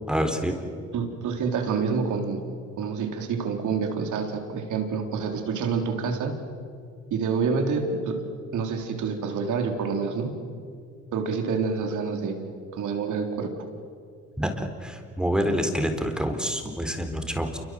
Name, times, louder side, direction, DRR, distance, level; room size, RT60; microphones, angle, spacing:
voice 1, 0.1-0.6 14.4-17.6, equal, 5° right, 5 dB, 4.0 m, -27 dB
voice 2, 0.9-2.4 2.8-6.4 7.1-8.2 8.5-10.3 11.1-12.4 12.7-13.5, right 5 dB, 80° right, 4 dB, 3.9 m, -27 dB
28.5 x 24.5 x 7.8 m, 2.4 s
cardioid pair, 90°, 30 cm